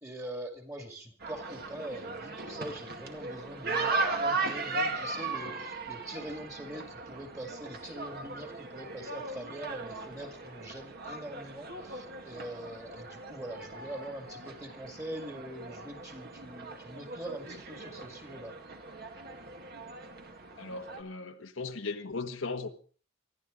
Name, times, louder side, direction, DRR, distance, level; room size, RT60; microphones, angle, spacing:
voice 1, 0.0-18.5, right 1 dB, 15° right, 2.3 m, -43 dB
sound 1, 1.2-21.0, right 3 dB, 50° right, 2.1 m, -38 dB
voice 2, 20.6-22.7, left 3 dB, 85° left, 1.6 m, -37 dB
25.5 x 12.5 x 3.9 m
head